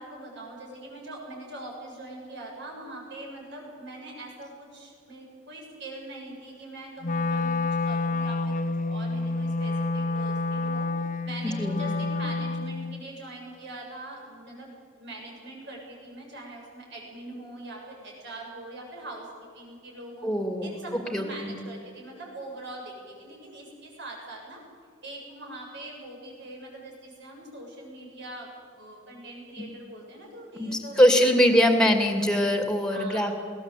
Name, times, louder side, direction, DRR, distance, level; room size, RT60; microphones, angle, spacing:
voice 1, 0.0-10.9 11.2-19.3 19.5-20.3 20.6-24.6 25.0-28.5 28.8-31.9 32.9-33.4, right 1 dB, 60° right, -1 dB, 7.7 m, -42 dB
Wind instrument woodwind instrument, 7.0-13.0, left 3 dB, 40° left, 0.7 m, -28 dB
voice 2, 11.4-11.8 20.2-20.7 21.1-21.6 30.6-33.4, equal, 5° left, 5 dB, 2.5 m, -22 dB
21.0 x 18.0 x 8.4 m, 2.2 s
head